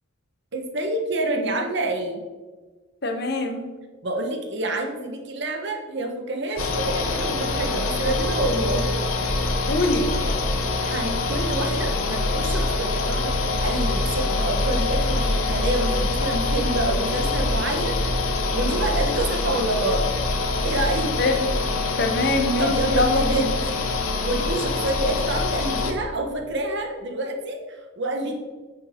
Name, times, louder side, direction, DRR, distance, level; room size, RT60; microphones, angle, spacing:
voice 1, 0.5-2.2 4.0-8.9 10.8-18.0 18.5-20.1 20.6-21.1 22.6-23.5 24.2-28.3, right 2 dB, 55° right, 3 dB, 1.3 m, -27 dB
voice 2, 3.0-3.7 9.6-10.1 21.2-21.5 22.0-23.5, left 2 dB, 50° left, 4 dB, 1.1 m, -23 dB
sound 1, 6.6-25.9, left 2 dB, 75° left, 1.1 m, -24 dB
9.5 x 7.0 x 3.8 m, 1.3 s
head